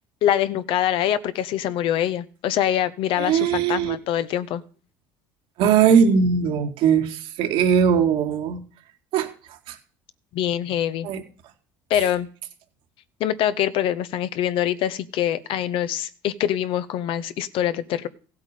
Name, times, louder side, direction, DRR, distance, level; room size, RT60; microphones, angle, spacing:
voice 1, 0.2-4.6 10.3-11.1 11.9-12.3 13.2-18.1, left 11 dB, 65° left, 14 dB, 0.9 m, -24 dB
voice 2, 3.2-4.0 5.6-8.6 9.1-9.3 9.7-9.8 11.0-11.2, right 7 dB, 70° right, 5 dB, 2.0 m, -20 dB
15.5 x 8.2 x 5.0 m, 0.41 s
supercardioid pair, 90°, 10 cm